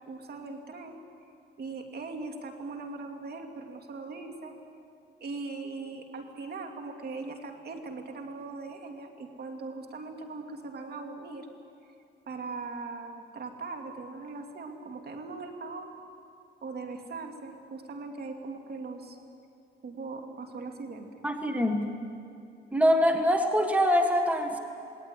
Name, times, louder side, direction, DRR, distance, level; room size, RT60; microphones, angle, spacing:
voice 1, 0.1-1.0 1.6-4.6 5.2-11.5 12.3-15.9 16.6-19.2 19.8-21.2, right 3 dB, 55° right, 4 dB, 2.7 m, -40 dB
voice 2, 21.2-21.9 22.7-24.6, equal, 5° right, 4 dB, 1.7 m, -24 dB
19.0 x 19.0 x 9.5 m, 2.6 s
cardioid pair, 90°, 20 cm